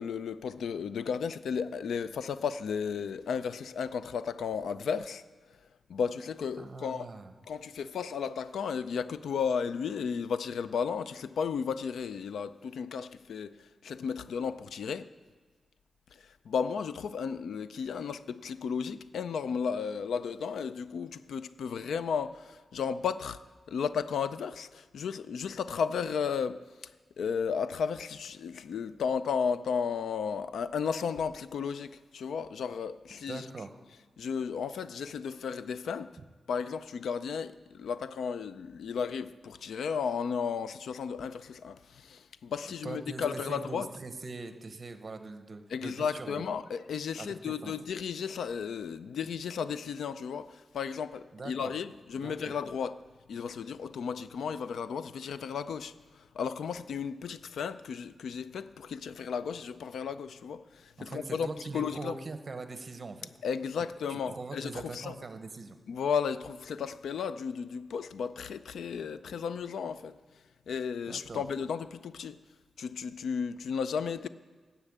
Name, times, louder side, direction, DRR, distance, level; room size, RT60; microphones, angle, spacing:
voice 1, 0.0-5.2 5.9-7.1 7.5-15.1 16.1-23.4 23.7-26.9 27.2-33.4 34.2-36.1 36.5-43.9 45.7-53.0 53.3-62.2 63.4-65.1 65.9-70.2 70.7-72.4 72.8-74.3, left 6 dB, 85° left, 0.4 m, -34 dB
voice 2, 6.6-7.3 33.3-33.7 42.8-46.5 47.2-47.7 51.3-51.7 52.2-52.5 61.0-63.3 64.1-65.8 71.0-71.4, right 3 dB, 35° right, 0.9 m, -42 dB
10.0 x 7.2 x 8.7 m
wide cardioid pair, 140°, 0 cm